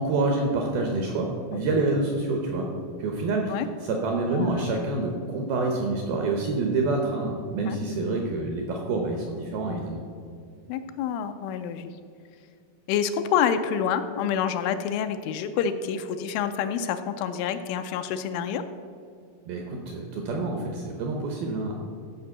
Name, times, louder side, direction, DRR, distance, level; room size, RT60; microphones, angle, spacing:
voice 1, 0.0-2.7 3.0-10.0 19.5-21.7, right 3 dB, 80° right, 2 dB, 2.1 m, -27 dB
voice 2, 4.3-4.7 7.7-7.8 10.7-11.9 12.9-18.6, left 8 dB, 85° left, 8 dB, 2.9 m, -27 dB
14.5 x 5.3 x 7.2 m, 2.4 s
omnidirectional pair, 5.7 m